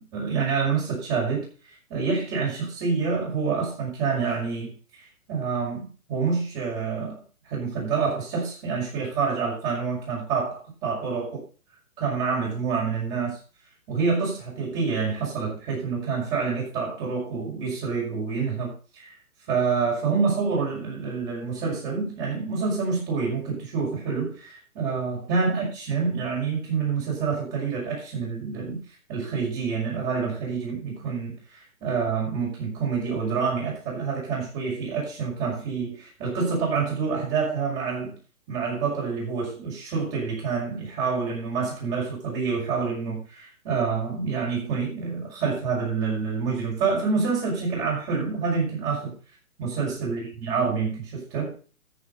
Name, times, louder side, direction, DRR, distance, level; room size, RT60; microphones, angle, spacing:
voice 1, 0.0-1.4 1.9-5.8 6.1-7.2 7.5-11.4 12.0-13.4 13.9-19.1 19.5-28.8 29.1-38.2 38.5-49.1 49.6-51.5, right 5 dB, 25° right, -3 dB, 5.8 m, -27 dB
13.5 x 6.7 x 5.6 m, 0.37 s
hypercardioid pair, 140°, 44 cm